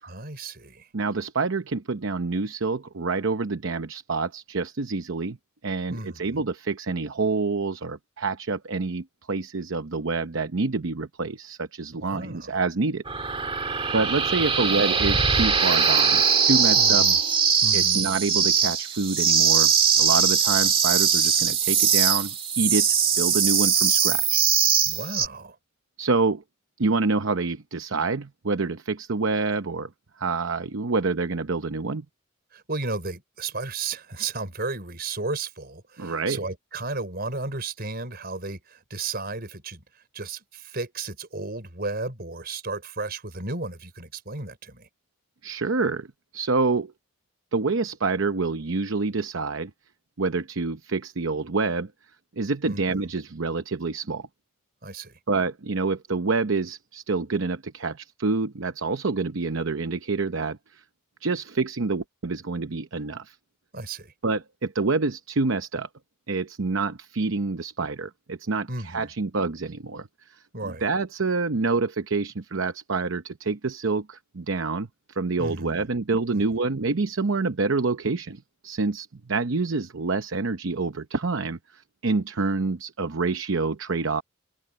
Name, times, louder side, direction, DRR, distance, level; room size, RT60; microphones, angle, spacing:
voice 1, 0.0-0.9 5.9-6.4 11.9-12.6 14.6-14.8 16.7-17.2 17.6-18.0 24.8-25.6 32.5-39.8 40.1-44.9 52.6-53.0 54.8-55.2 63.7-64.1 68.7-69.1 70.5-70.8 75.4-75.9 76.3-76.4, right 3 dB, 45° right, 4.9 m, -34 dB
voice 2, 0.9-5.4 5.6-13.0 13.9-17.1 17.7-24.4 26.0-26.4 26.8-29.9 30.2-32.0 36.0-36.4 45.4-46.1 46.3-46.9 47.5-49.7 50.2-51.9 52.4-54.3 55.3-60.8 61.2-63.4 64.2-65.9 66.3-84.2, right 3 dB, 65° right, 0.8 m, -27 dB
sound 1, 13.1-25.3, right 6 dB, 25° right, 1.9 m, -21 dB
open air
head